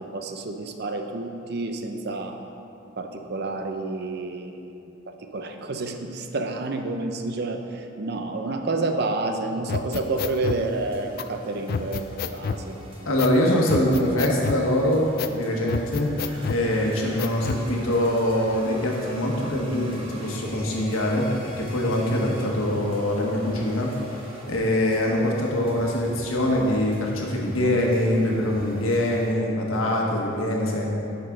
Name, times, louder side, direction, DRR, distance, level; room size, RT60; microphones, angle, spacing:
voice 1, 0.0-2.4 3.0-4.7 5.1-12.8, right 2 dB, 50° right, 5 dB, 0.6 m, -29 dB
sound 1, 9.7-10.6 11.2-11.3 11.7-12.6 13.2-13.4 13.7-14.6 15.2-15.4 15.7-16.6 17.2-17.7, left 5 dB, 45° left, 0.3 m, -29 dB
sound 2, 10.0-29.3, equal, 25° right, 1.4 m, -44 dB
voice 2, 13.0-16.1 16.5-21.2 21.6-23.9 24.5-30.9, left 1 dB, 85° left, -1 dB, 1.4 m, -23 dB
10.5 x 6.6 x 3.8 m, 2.9 s
head